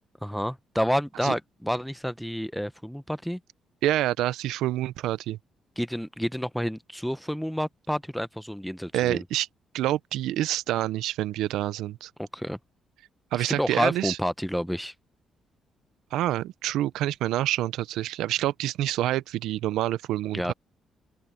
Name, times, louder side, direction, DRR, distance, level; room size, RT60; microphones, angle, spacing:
voice 1, 0.2-3.4 5.8-9.2 12.2-12.6 13.4-14.9 20.3-20.5, equal, ahead, 0.8 m, -29 dB
voice 2, 3.8-5.4 8.9-9.5 9.7-12.1 13.3-14.2 16.1-20.5, right 14 dB, 90° right, 0.6 m, -27 dB
open air
cardioid pair, 90°, 0 cm